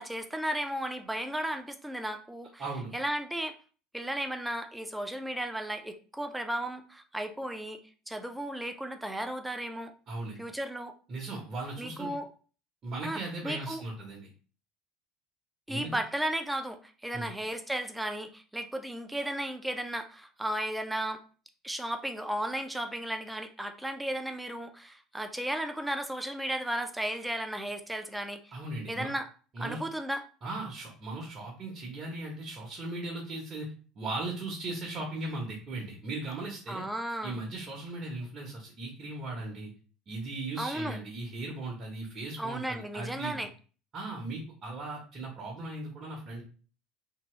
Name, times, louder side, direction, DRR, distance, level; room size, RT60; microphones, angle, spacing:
voice 1, 0.0-2.6 2.9-3.5 3.9-7.8 8.1-9.9 10.4-10.9 11.8-12.3 13.0-13.8 15.7-21.2 21.6-28.5 28.9-29.3 29.6-30.2 36.7-37.4 40.6-41.0 42.4-43.5, right 1 dB, 5° right, 6 dB, 0.5 m, -34 dB
voice 2, 2.6-2.9 10.1-10.4 11.1-12.1 12.8-14.3 15.7-16.0 17.1-17.3 28.5-29.1 29.5-29.8 30.4-33.7 34.0-36.8 37.2-39.7 40.1-43.5 43.9-46.4, right 2 dB, 35° right, -3 dB, 0.8 m, -38 dB
2.9 x 2.8 x 3.0 m, 0.39 s
figure-of-eight pair, 65°, 0 cm